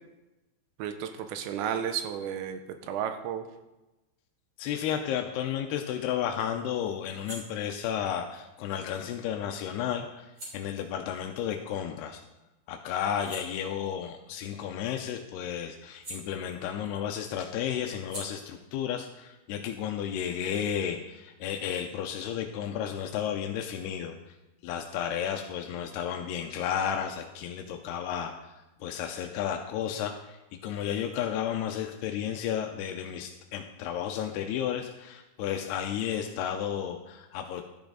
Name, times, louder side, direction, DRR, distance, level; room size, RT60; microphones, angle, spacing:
voice 1, 0.8-2.6 2.9-3.4, right 9 dB, 80° right, 8 dB, 3.0 m, -32 dB
voice 2, 4.6-10.3 10.5-12.2 12.7-24.3 24.6-28.3 28.8-37.6, left 9 dB, 85° left, 4 dB, 2.4 m, -32 dB
sound 1, 7.1-12.3 12.7-17.0 17.2-20.6, right 1 dB, 25° right, 3.6 m, -50 dB
13.0 x 10.5 x 3.9 m, 1.0 s
omnidirectional pair, 5.3 m